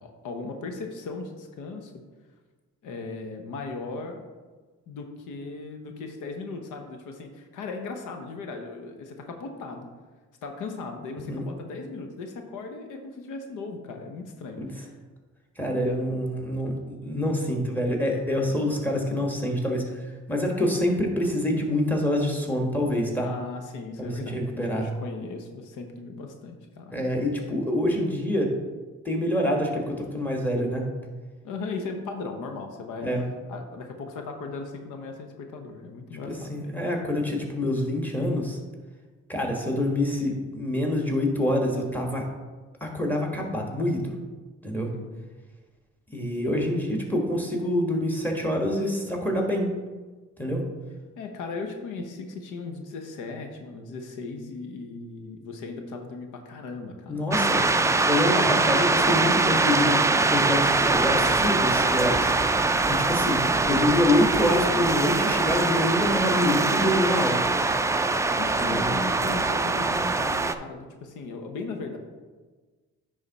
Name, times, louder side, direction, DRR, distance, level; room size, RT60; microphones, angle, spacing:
voice 1, 0.0-1.9 2.8-4.2 4.9-9.9 10.4-14.9 23.2-27.0 31.4-33.1 33.5-36.7 44.7-45.1 51.2-57.9 68.4-72.0, left 3 dB, 85° left, 4 dB, 0.9 m, -37 dB
voice 2, 15.6-23.3 24.0-24.9 26.9-28.5 29.0-30.8 33.0-33.2 36.3-38.6 39.3-42.2 42.8-44.1 44.6-44.9 46.1-49.7 50.4-50.6 57.1-57.6 58.1-62.3 62.9-63.4 63.7-67.4 68.6-68.9, left 1 dB, 5° left, 1 dB, 1.5 m, -26 dB
sound 1, 57.3-70.5, right 3 dB, 10° right, 0.3 m, -23 dB
9.9 x 3.8 x 4.1 m, 1.3 s
cardioid pair, 90°, 30 cm